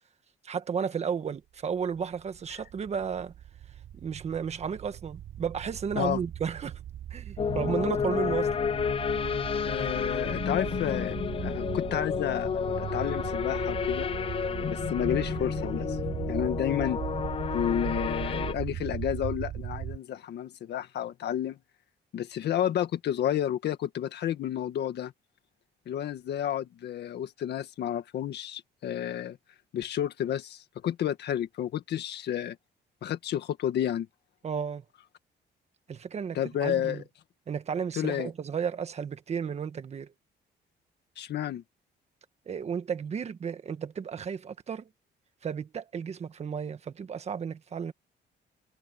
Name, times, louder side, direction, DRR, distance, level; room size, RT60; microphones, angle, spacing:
voice 1, 0.4-3.3 4.0-6.8 7.1-8.5 34.4-34.8 35.9-37.0 37.5-40.1 42.5-44.9 45.4-47.9, right 7 dB, 35° right, 1.5 m, -33 dB
sound 1, 2.3-20.0, right 11 dB, 70° right, 7.5 m, -38 dB
sound 2, 7.4-18.5, left 7 dB, 30° left, 0.5 m, -31 dB
voice 2, 9.6-14.1 14.7-16.0 16.3-17.0 17.5-21.6 22.1-25.1 25.8-29.4 29.7-32.6 33.0-34.1 36.3-37.0 38.0-38.3 41.2-41.6, left 10 dB, 65° left, 1.8 m, -31 dB
cardioid pair, 155°, 19 cm